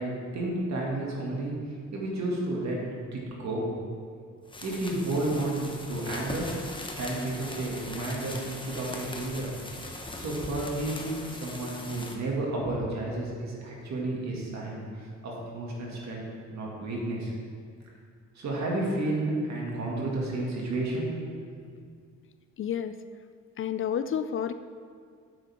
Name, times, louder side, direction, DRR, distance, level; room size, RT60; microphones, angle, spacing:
voice 1, 0.0-1.5 1.9-2.8 3.1-3.7 4.6-6.5 7.0-9.5 9.9-16.2 16.5-17.3 18.4-21.4 21.7-21.8, right 2 dB, 65° right, -3 dB, 2.4 m, -31 dB
sound 1, 4.4-12.1, left 2 dB, 15° left, 1.0 m, -40 dB
voice 2, 22.6-22.9 23.6-24.5, left 8 dB, 45° left, 11 dB, 0.4 m, -30 dB
9.4 x 7.5 x 3.7 m, 2.1 s
cardioid pair, 90°, 30 cm